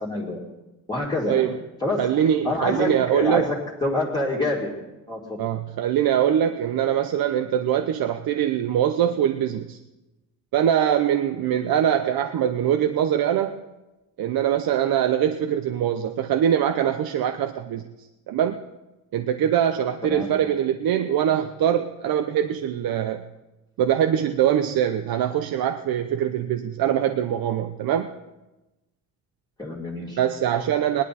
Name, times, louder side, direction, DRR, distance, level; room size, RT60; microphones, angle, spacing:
voice 1, 0.0-0.4 0.9-1.4 1.8-2.0 2.4-4.7 5.1-5.4 20.0-20.3 29.6-30.2, left 2 dB, 10° left, -4 dB, 2.3 m, -26 dB
voice 2, 1.3-1.6 2.0-3.5 5.4-9.8 10.5-13.6 14.2-17.8 18.3-18.6 19.1-23.2 23.8-28.1 30.2-31.0, right 10 dB, 80° right, 7 dB, 0.7 m, -23 dB
19.0 x 11.0 x 4.2 m, 1.0 s
cardioid pair, 145°, 35 cm